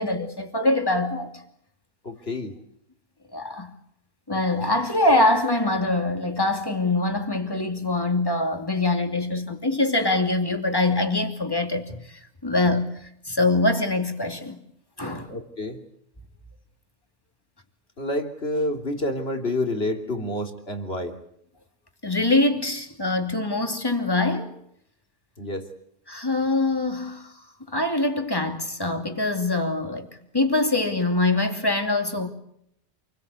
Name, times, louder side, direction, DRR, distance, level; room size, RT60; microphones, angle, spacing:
voice 1, 0.0-1.3 3.3-3.7 4.3-14.6 15.0-15.3 22.0-24.5 26.1-27.3 27.7-30.1 30.3-32.3, left 2 dB, 20° left, 2.8 m, -24 dB
voice 2, 2.0-2.5 15.3-15.8 18.0-21.2 25.4-25.6, left 1 dB, 55° left, 3.4 m, -28 dB
28.5 x 22.0 x 8.3 m
omnidirectional pair, 1.3 m